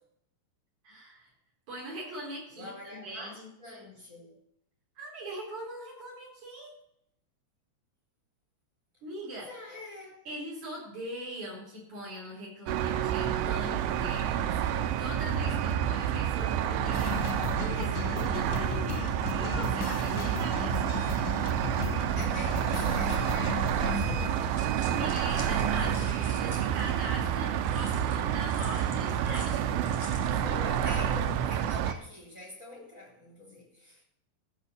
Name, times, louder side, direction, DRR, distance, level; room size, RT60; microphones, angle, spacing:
voice 1, 0.8-1.3 1.7-3.5 5.0-6.7 9.0-9.5 10.2-20.8 24.9-26.1 26.4-31.0, equal, 40° right, -2 dB, 4.9 m, -41 dB
voice 2, 2.5-4.3 9.3-10.2 22.2-24.9 25.5-26.5 30.3-34.0, left 2 dB, 15° right, -1 dB, 3.7 m, -45 dB
sound 1, 12.7-31.9, right 9 dB, 80° right, 3.0 m, -29 dB
sound 2, 16.9-24.3, left 12 dB, 80° left, 2.8 m, -37 dB
sound 3, 24.3-27.1 27.6-30.3, left 1 dB, 5° left, 2.8 m, -47 dB
14.5 x 6.1 x 8.2 m, 0.74 s
omnidirectional pair, 5.7 m